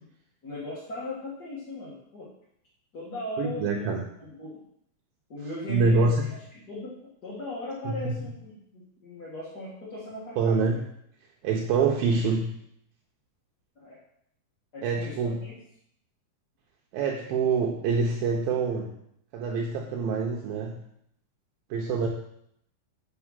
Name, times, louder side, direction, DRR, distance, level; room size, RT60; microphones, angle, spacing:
voice 1, 0.4-2.3 2.9-4.6 5.3-6.9 7.2-10.7 13.8-14.0 14.7-15.2 15.4-15.5, left 1 dB, 55° left, -7 dB, 1.1 m, -38 dB
voice 2, 3.4-4.0 5.7-6.3 7.8-8.2 10.4-10.7 11.4-12.5 14.8-15.4 16.9-18.9 19.3-20.8 21.7-22.1, right 4 dB, 75° right, 0 dB, 2.5 m, -25 dB
6.2 x 5.7 x 7.2 m, 0.72 s
omnidirectional pair, 4.4 m